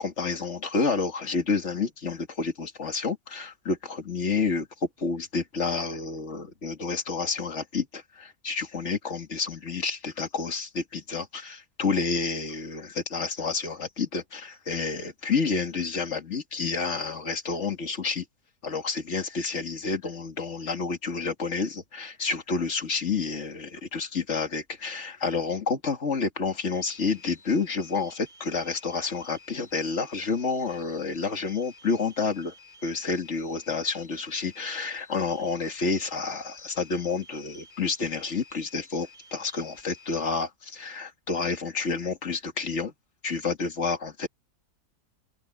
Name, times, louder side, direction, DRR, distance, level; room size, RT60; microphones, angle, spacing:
voice 1, 0.0-4.7 5.0-18.2 18.6-32.5 32.8-42.9 43.2-44.3, left 4 dB, 45° left, 2.6 m, -29 dB
sound 1, 26.7-40.2, left 3 dB, 30° right, 8.1 m, -53 dB
open air
omnidirectional pair, 1.7 m